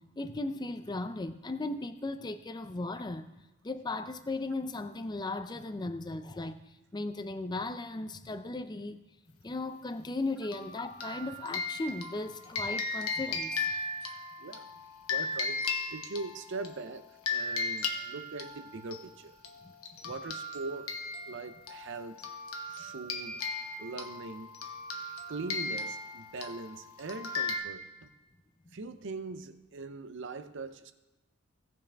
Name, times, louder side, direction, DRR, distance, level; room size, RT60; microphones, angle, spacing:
voice 1, 0.0-3.3 3.6-9.0 9.4-13.7 19.6-19.7 28.7-28.8, left 2 dB, 20° left, 0.5 m, -37 dB
sound 1, 10.5-16.7 17.3-19.0 19.4-19.6 19.8-27.6, left 3 dB, 80° left, 1.1 m, -36 dB
voice 2, 15.1-15.6 15.9-19.4 20.0-20.9 21.3-22.3 22.7-23.4 23.8-24.5 25.3-28.1 28.7-30.9, right 3 dB, 55° right, 0.6 m, -41 dB
17.5 x 6.2 x 3.4 m
head